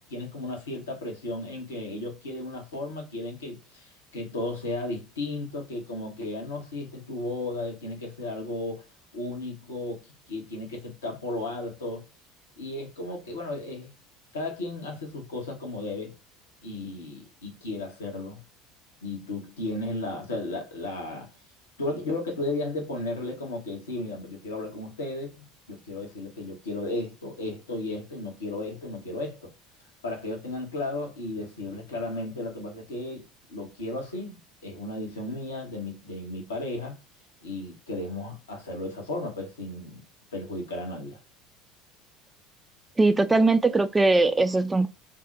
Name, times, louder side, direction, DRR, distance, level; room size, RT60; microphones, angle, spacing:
voice 1, 0.1-8.9 9.1-12.0 12.6-13.9 14.3-16.1 16.6-18.4 19.0-21.3 21.8-29.5 30.0-34.4 34.6-37.0 37.4-40.0 40.3-41.2, left 2 dB, 75° left, 0.8 m, -34 dB
voice 2, 43.0-44.9, right 3 dB, 15° right, 0.4 m, -20 dB
2.6 x 2.0 x 3.7 m
figure-of-eight pair, 65°, 0 cm